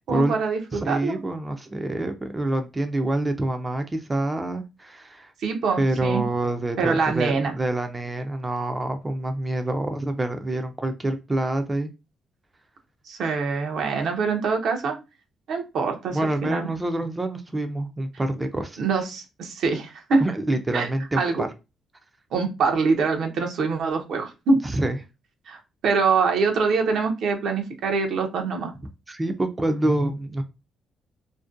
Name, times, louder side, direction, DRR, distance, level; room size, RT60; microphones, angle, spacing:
voice 1, 0.1-1.2 5.4-6.2 6.8-7.5 13.1-15.0 15.5-16.7 18.8-20.2 20.7-20.9 21.2-21.4 22.3-24.6 25.5-28.7, right 4 dB, 70° right, 4 dB, 0.5 m, -24 dB
voice 2, 0.7-5.3 5.8-11.9 16.1-18.8 20.2-21.5 24.6-25.0 29.1-30.4, right 1 dB, 20° right, 6 dB, 0.3 m, -26 dB
2.5 x 2.1 x 2.4 m, 0.26 s
cardioid pair, 90°, 0 cm